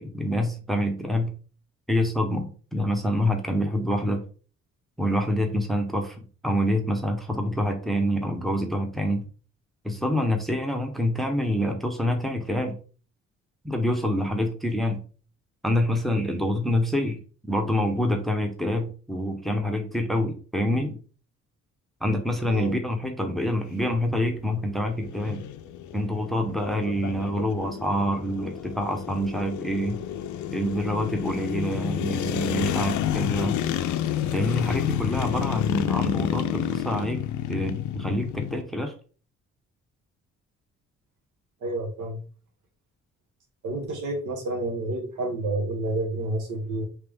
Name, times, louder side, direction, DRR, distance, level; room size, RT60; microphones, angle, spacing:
voice 1, 0.0-1.3 1.9-4.3 5.0-9.3 9.8-12.8 13.6-15.0 15.6-21.0 22.0-25.5 25.9-30.0 30.5-33.6 34.3-38.9, equal, ahead, 4 dB, 0.8 m, -26 dB
sound 1, 23.4-38.6, left 11 dB, 75° left, 0.5 m, -30 dB
voice 2, 41.6-42.2 43.6-46.8, right 2 dB, 75° right, 2 dB, 1.1 m, -29 dB
3.3 x 3.0 x 3.4 m, 0.39 s
cardioid pair, 90°, 30 cm